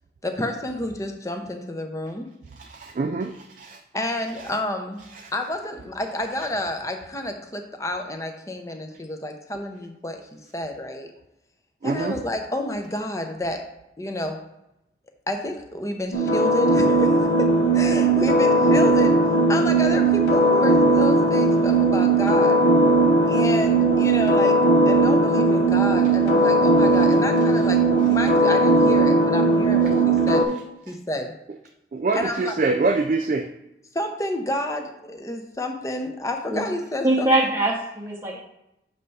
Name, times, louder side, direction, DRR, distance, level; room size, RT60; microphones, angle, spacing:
voice 1, 0.2-2.3 3.9-5.0 5.3-10.2 10.5-11.1 11.8-13.7 14.0-14.4 15.3-17.5 17.7-19.2 19.5-22.7 23.3-24.6 24.9-30.4 30.9-31.3 32.1-32.6 33.9-37.3, left 1 dB, 15° left, 5 dB, 0.6 m, -30 dB
voice 2, 2.7-3.8 11.8-12.2 31.9-33.5, right 3 dB, 45° right, 5 dB, 0.3 m, -24 dB
sound 1, 16.1-30.4, right 2 dB, 70° left, 0.8 m, -18 dB
voice 3, 37.0-38.4, right 1 dB, 15° right, -2 dB, 0.8 m, -22 dB
6.6 x 3.3 x 5.4 m, 0.87 s
head